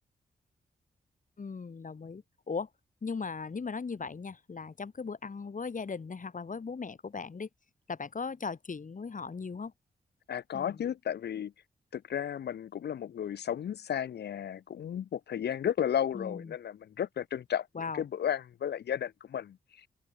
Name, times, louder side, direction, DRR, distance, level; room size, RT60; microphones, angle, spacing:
voice 1, 1.4-2.7 3.0-7.5 7.9-9.7 10.5-10.8 16.1-16.6 17.7-18.0, left 5 dB, 50° left, 3.9 m, -38 dB
voice 2, 10.3-11.5 11.9-19.9, left 9 dB, 85° left, 5.2 m, -34 dB
cardioid pair, 50°, 17 cm